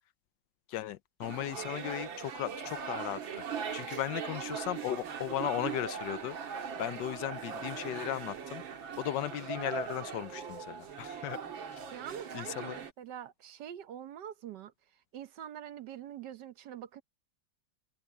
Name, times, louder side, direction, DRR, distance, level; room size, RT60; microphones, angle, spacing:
voice 1, 0.7-3.2 3.7-8.6 9.0-11.4 12.3-12.8, left 12 dB, 75° left, 1.2 m, -36 dB
sound 1, 1.2-12.9, right 6 dB, 85° right, 2.5 m, -40 dB
voice 2, 11.9-14.7 15.1-17.0, right 10 dB, 65° right, 1.4 m, -44 dB
open air
omnidirectional pair, 2.1 m